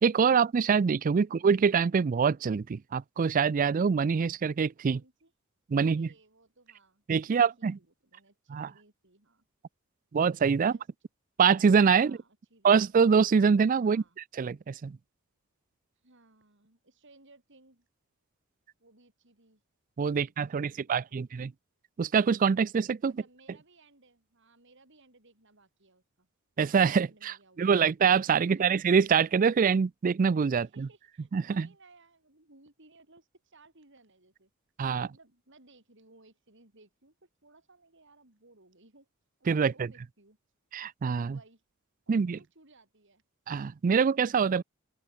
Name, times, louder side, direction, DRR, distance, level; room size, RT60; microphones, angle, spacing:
voice 1, 0.0-5.0 5.7-6.1 7.1-7.7 8.5-8.7 10.1-10.7 11.4-12.2 12.6-14.0 14.4-15.0 20.0-21.5 22.0-23.1 26.6-30.9 31.3-31.7 34.8-35.1 39.5-39.9 40.7-41.4 42.1-42.4 43.5-44.6, right 6 dB, 40° right, 0.3 m, -25 dB
voice 2, 4.9-5.3 5.8-9.5 10.6-10.8 11.9-12.8 13.8-14.2 16.0-17.9 18.8-19.6 20.1-21.3 23.1-26.3 27.0-27.9 28.4-29.1 30.6-34.5 35.0-39.1 39.4-40.4 41.2-41.6 42.1-43.2, right 2 dB, 60° right, 5.5 m, -60 dB
open air
head